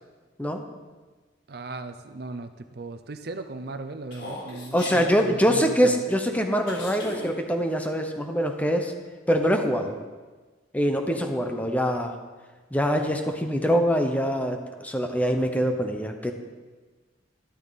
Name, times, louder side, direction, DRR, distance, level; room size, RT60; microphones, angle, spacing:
voice 1, 1.5-6.0, right 3 dB, 55° right, 9 dB, 0.6 m, -37 dB
Human voice, 4.1-5.1 6.7-7.3, left 2 dB, 70° left, 3.9 m, -37 dB
voice 2, 4.7-8.9 9.3-9.9 10.7-12.1 12.7-16.3, equal, 10° left, 4 dB, 0.9 m, -24 dB
12.5 x 12.5 x 4.2 m, 1.3 s
head